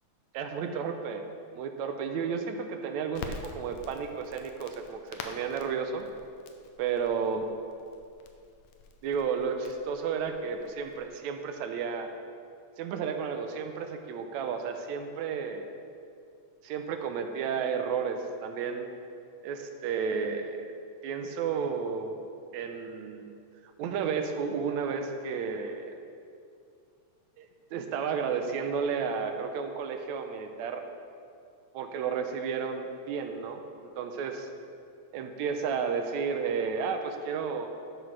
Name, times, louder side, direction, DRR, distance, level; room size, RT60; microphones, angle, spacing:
voice 1, 0.3-1.2 1.5-6.1 6.8-7.5 9.0-12.1 12.8-15.7 16.6-18.9 19.4-20.7 21.0-22.2 22.5-23.3 23.8-26.0 27.4-30.9 31.7-33.6 34.0-34.5 35.1-37.7, right 6 dB, 80° right, 6 dB, 2.0 m, -32 dB
Crackle, 3.1-11.1, left 4 dB, 75° left, 2.0 m, -47 dB
12.0 x 6.1 x 4.7 m, 2.4 s
omnidirectional pair, 3.3 m